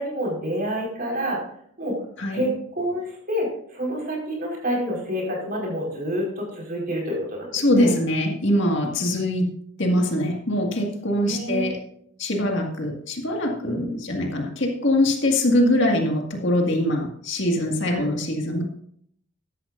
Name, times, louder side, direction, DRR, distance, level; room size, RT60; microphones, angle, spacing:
voice 1, 0.0-1.4 1.8-2.0 2.3-7.9 11.2-11.7 13.6-14.0 17.9-18.1, equal, 40° right, -2 dB, 4.8 m, -28 dB
voice 2, 2.2-2.5 7.5-9.5 9.8-11.8 12.2-18.6, left 1 dB, 55° left, 1 dB, 2.0 m, -23 dB
14.0 x 11.0 x 2.6 m, 0.67 s
head